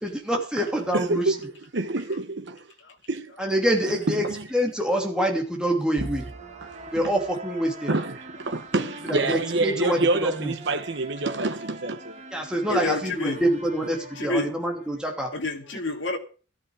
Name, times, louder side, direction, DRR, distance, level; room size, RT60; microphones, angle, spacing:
voice 1, 0.0-1.4 3.4-6.3 6.9-7.9 8.8-10.5 12.3-15.3, right 1 dB, 5° right, 2.7 m, -26 dB
voice 2, 0.9-2.6 3.1-3.3 4.1-4.3 7.9-8.1 8.4-12.2 12.7-12.8, right 2 dB, 65° right, 1.0 m, -27 dB
sound 1, 6.0-14.9, right 1 dB, 35° right, 1.5 m, -42 dB
voice 3, 12.7-13.4 14.2-14.5 15.3-16.2, left 2 dB, 70° left, 2.6 m, -28 dB
14.0 x 12.5 x 4.9 m
head